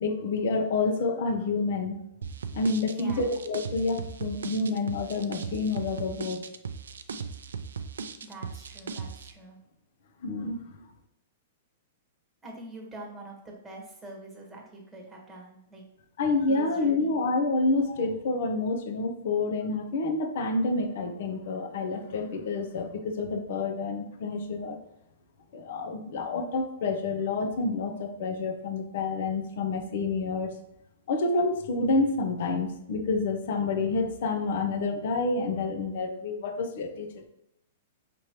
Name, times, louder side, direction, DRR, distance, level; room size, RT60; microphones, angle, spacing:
voice 1, 0.0-2.0 2.5-6.4 10.2-10.6 16.2-24.8 25.5-30.5 31.1-37.3, left 3 dB, 65° left, 5 dB, 0.6 m, -28 dB
sound 1, 2.2-9.3, right 5 dB, 90° right, 0.4 m, -38 dB
voice 2, 2.9-3.3 8.2-9.6 12.4-15.8 16.5-17.1, right 2 dB, 10° right, -1 dB, 1.2 m, -45 dB
5.2 x 3.0 x 2.9 m, 0.80 s
hypercardioid pair, 140°, 0 cm